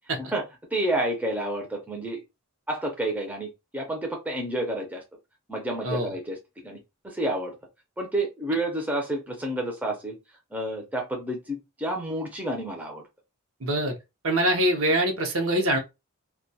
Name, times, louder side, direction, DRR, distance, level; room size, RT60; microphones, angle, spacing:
voice 1, 0.7-2.2 2.7-5.0 5.5-6.4 6.6-7.5 8.0-10.2 10.5-13.0, right 1 dB, 5° right, 0.5 m, -30 dB
voice 2, 13.6-14.0 14.2-15.8, right 1 dB, 70° right, 0.7 m, -24 dB
2.2 x 2.2 x 2.6 m
head